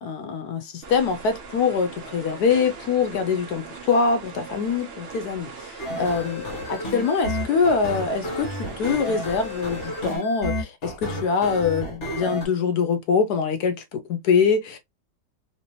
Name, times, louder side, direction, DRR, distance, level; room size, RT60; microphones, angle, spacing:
voice 1, 0.0-14.8, left 5 dB, 70° left, 1.1 m, -24 dB
sound 1, 0.8-10.2, right 4 dB, 45° right, 0.8 m, -40 dB
sound 2, 5.8-12.5, equal, 45° left, 1.4 m, -31 dB
3.2 x 2.8 x 2.9 m
omnidirectional pair, 1.9 m